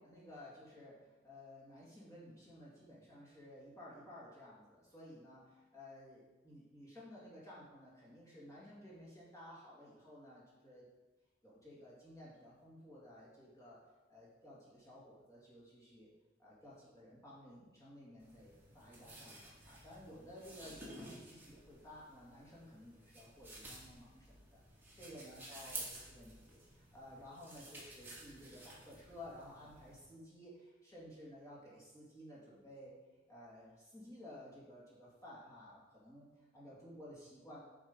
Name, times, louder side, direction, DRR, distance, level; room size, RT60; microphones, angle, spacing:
voice 1, 0.0-10.9 11.4-13.8 14.1-16.1 16.4-24.6 24.9-33.0 33.3-37.6, left 1 dB, 15° left, -7 dB, 2.3 m, -55 dB
sound 1, 18.2-30.0, right 1 dB, 10° right, 1.6 m, -53 dB
8.3 x 3.6 x 5.2 m, 1.2 s
head